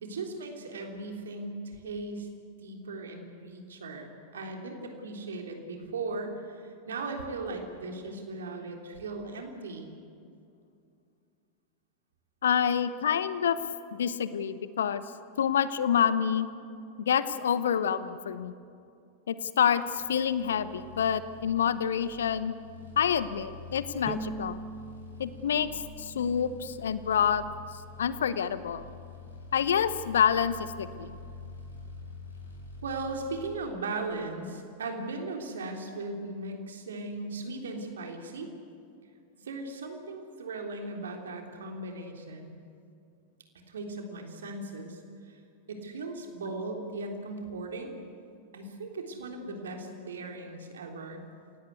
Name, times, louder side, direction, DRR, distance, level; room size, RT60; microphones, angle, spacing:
voice 1, 0.0-2.3 2.6-9.9 32.8-38.5 39.4-42.5 43.7-45.0 45.3-45.4 45.7-47.9 48.5-51.2, right 3 dB, 65° right, 3 dB, 3.5 m, -38 dB
voice 2, 12.4-13.6 14.0-15.0 15.4-16.5 17.0-18.5 19.3-22.5 23.0-24.6 25.2-27.4 28.0-28.8 29.5-31.1, left 8 dB, 65° left, 14 dB, 0.9 m, -27 dB
sound 1, 19.8-33.6, left 2 dB, 80° left, 6.2 m, -47 dB
Bowed string instrument, 24.1-27.3, right 1 dB, ahead, 0.7 m, -42 dB
27.5 x 18.0 x 8.2 m, 2.5 s
figure-of-eight pair, 90°, 0 cm